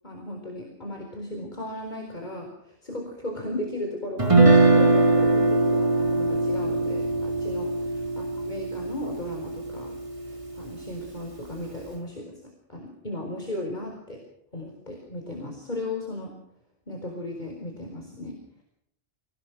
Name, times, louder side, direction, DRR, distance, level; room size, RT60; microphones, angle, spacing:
voice 1, 0.0-9.9 10.2-12.4 12.7-14.2 14.5-16.3 16.9-18.4, left 1 dB, 45° left, 1 dB, 4.7 m, -36 dB
Guitar, 4.2-10.3, right 2 dB, 30° right, 2.4 m, -21 dB
28.0 x 17.5 x 6.0 m, 0.73 s
omnidirectional pair, 1.1 m